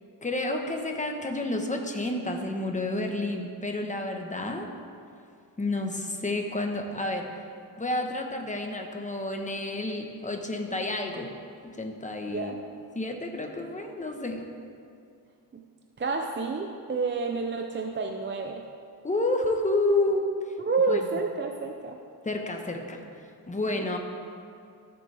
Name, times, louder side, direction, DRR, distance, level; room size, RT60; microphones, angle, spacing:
voice 1, 0.2-4.7 5.6-7.3 7.8-11.3 11.8-12.6 12.9-14.4 19.0-20.3 20.9-21.0 22.2-23.0 23.5-24.0, left 2 dB, 20° left, 3 dB, 1.2 m, -30 dB
voice 2, 12.3-12.6 15.5-15.6 16.0-18.7 20.7-22.0 23.7-23.8, right 4 dB, 30° right, 3 dB, 0.6 m, -29 dB
15.5 x 7.0 x 3.5 m, 2.4 s
cardioid pair, 95°, 39 cm